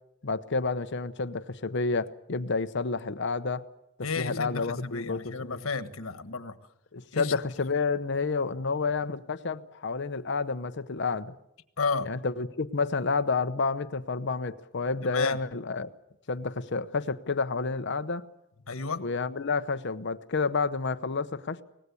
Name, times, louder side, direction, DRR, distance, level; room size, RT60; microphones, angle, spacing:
voice 1, 0.2-3.6 4.2-5.7 6.9-11.3 12.0-15.9 16.3-18.2 19.0-21.6, left 4 dB, 60° left, 12 dB, 0.9 m, -30 dB
voice 2, 4.0-6.6 7.1-7.4 11.8-12.1 15.0-15.4 18.7-19.0, left 4 dB, 90° left, 10 dB, 1.5 m, -32 dB
24.5 x 19.5 x 8.4 m, 0.83 s
head